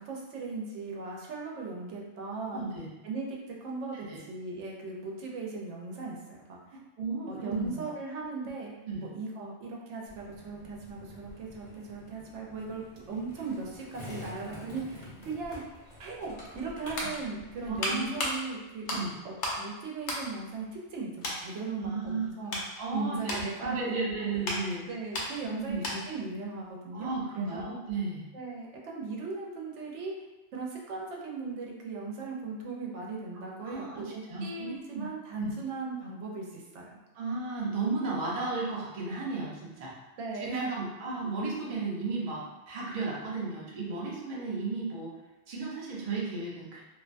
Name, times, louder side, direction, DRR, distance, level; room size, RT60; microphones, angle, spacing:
voice 1, 0.0-2.7 3.0-6.8 7.3-8.7 9.0-15.6 16.0-18.9 19.2-22.6 22.9-23.9 24.2-24.3 24.9-27.7 28.3-30.1 30.5-37.0 40.2-40.7, right 3 dB, 85° right, -2 dB, 0.9 m, -38 dB
voice 2, 2.5-2.9 3.9-4.2 6.7-8.2 8.8-9.1 17.7-18.2 18.9-19.1 21.8-22.3 22.8-24.9 25.4-25.8 26.9-28.2 33.6-35.1 35.4-35.5 37.1-40.0 40.4-45.1 45.5-46.8, right 3 dB, 45° right, -4 dB, 0.5 m, -34 dB
Skateboard, 10.1-18.1, left 1 dB, 40° left, 0.7 m, -48 dB
sound 1, 16.8-19.7 20.0-20.9 21.2-21.5 22.0-26.3 26.5-26.7, left 1 dB, 80° left, 0.9 m, -36 dB
2.5 x 2.2 x 2.4 m, 1.0 s
omnidirectional pair, 1.2 m